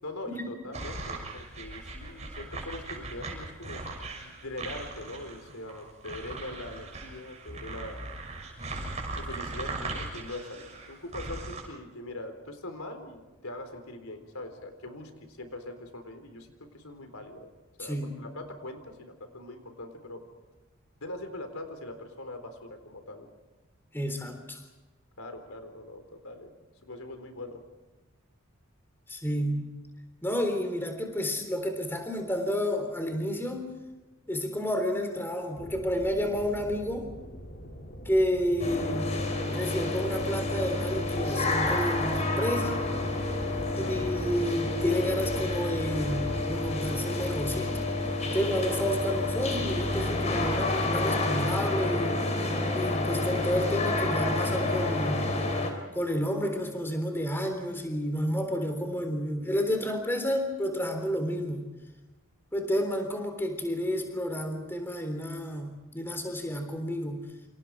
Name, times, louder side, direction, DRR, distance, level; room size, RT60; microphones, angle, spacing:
voice 1, 0.0-3.8 4.2-8.0 9.2-17.5 17.8-20.2 21.0-23.3 25.2-26.5 26.8-27.6 43.7-44.0, left 2 dB, 85° left, 6 dB, 4.0 m, -42 dB
sound 1, 0.7-11.6, right 2 dB, 30° right, 6.8 m, -39 dB
voice 2, 17.8-18.1 23.9-24.6 29.1-29.7 30.2-33.7 34.3-37.1 38.1-39.2 39.5-42.8 43.7-47.7 48.3-52.2 52.7-55.2 55.9-61.7 62.5-67.2, equal, 10° left, 5 dB, 3.6 m, -30 dB
sound 2, 35.6-47.0, equal, 50° left, 3.0 m, -44 dB
sound 3, 38.6-55.7, left 2 dB, 30° left, 4.0 m, -29 dB
29.0 x 27.5 x 4.8 m, 1.2 s
head